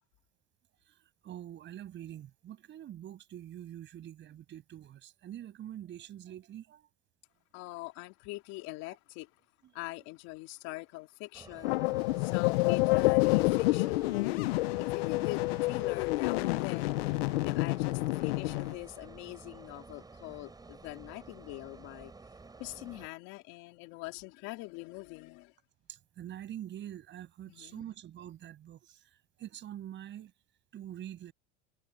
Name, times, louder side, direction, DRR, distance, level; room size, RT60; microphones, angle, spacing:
voice 1, 0.9-6.9 7.7-7.8 14.5-14.6 22.5-22.8 25.9-30.3 30.7-31.3, right 11 dB, 35° right, 7.8 m, -45 dB
voice 2, 7.5-9.3 9.7-11.8 12.2-16.9 17.4-22.1 22.6-25.5 27.5-27.8, left 22 dB, 60° left, 3.0 m, -43 dB
sound 1, 11.3-23.1, right 3 dB, 10° right, 6.8 m, -52 dB
sound 2, 11.6-18.7, left 22 dB, 80° left, 0.8 m, -28 dB
supercardioid pair, 130°, 30 cm